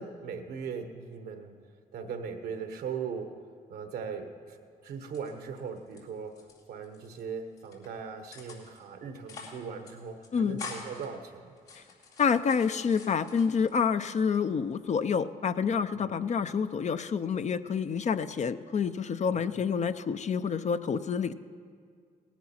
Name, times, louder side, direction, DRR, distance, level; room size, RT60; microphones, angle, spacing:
voice 1, 0.0-1.6 1.9-3.4 3.7-6.4 6.7-11.6 15.9-16.1 19.3-19.5, right 6 dB, 80° right, 7 dB, 1.1 m, -39 dB
sound 1, 4.9-6.0 6.3-7.2 7.6-7.9 8.3-8.8 9.1-9.6 9.8-9.9 10.2-11.1 11.6-13.8 14.2-14.8, left 4 dB, 85° left, 2.7 m, -46 dB
voice 2, 10.3-10.6 12.2-21.3, left 6 dB, 45° left, 12 dB, 0.5 m, -28 dB
18.5 x 10.0 x 4.3 m, 2.2 s
supercardioid pair, 60°, 16 cm